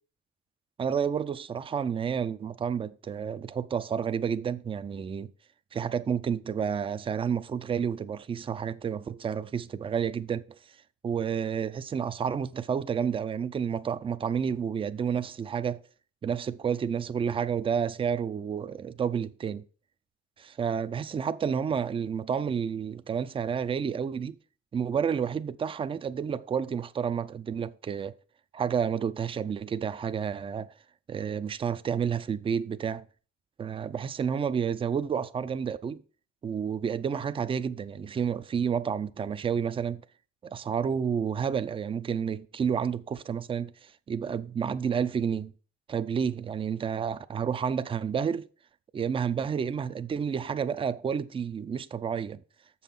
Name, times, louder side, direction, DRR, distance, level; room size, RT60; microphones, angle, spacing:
voice 1, 0.8-5.3 5.7-10.4 11.0-15.8 16.2-19.6 20.4-24.4 24.7-28.1 28.5-30.7 31.1-33.0 33.6-36.0 36.4-40.0 40.5-45.5 45.9-48.5 48.9-52.4, right 7 dB, 20° right, 0.3 m, -30 dB
7.1 x 5.5 x 5.8 m
cardioid pair, 130°, 30 cm